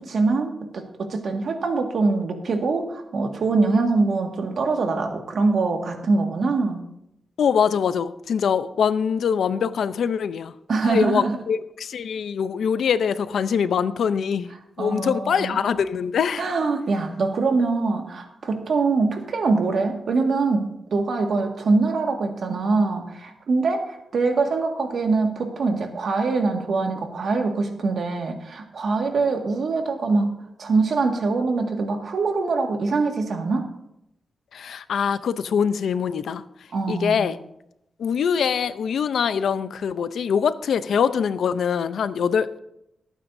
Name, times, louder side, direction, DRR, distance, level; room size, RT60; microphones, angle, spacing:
voice 1, 0.0-6.8 10.7-11.4 14.8-15.6 16.4-30.3 30.6-33.7 36.7-37.3, right 3 dB, 70° right, 3 dB, 1.8 m, -23 dB
voice 2, 7.4-10.5 10.8-14.5 14.8-16.4 34.5-36.4 36.9-37.4 38.0-42.6, left 7 dB, 90° left, 13 dB, 0.6 m, -23 dB
24.5 x 9.1 x 2.7 m, 0.84 s
cardioid pair, 90°, 0 cm